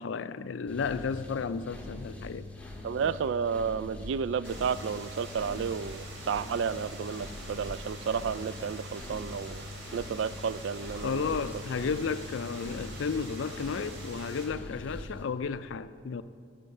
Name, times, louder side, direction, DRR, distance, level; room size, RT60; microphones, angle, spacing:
voice 1, 0.0-2.5 11.0-16.2, left 5 dB, 75° left, 0.4 m, -33 dB
sound 1, 0.7-15.2, left 2 dB, 5° left, 1.7 m, -43 dB
voice 2, 2.8-9.6 9.9-11.5, right 6 dB, 70° right, 0.3 m, -32 dB
sound 2, 4.4-14.4, right 2 dB, 85° right, 3.4 m, -45 dB
13.5 x 11.0 x 6.6 m
head